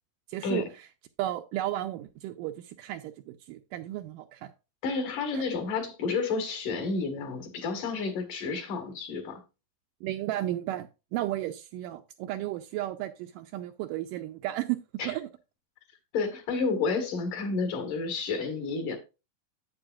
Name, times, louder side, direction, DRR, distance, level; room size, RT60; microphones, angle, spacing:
voice 1, 0.3-0.9 1.2-4.5 5.3-5.4 10.0-15.3, right 14 dB, 80° right, 2.1 m, -34 dB
voice 2, 4.8-9.4 15.0-15.1 16.1-19.0, left 4 dB, 70° left, 3.0 m, -30 dB
9.6 x 8.2 x 2.4 m
omnidirectional pair, 4.0 m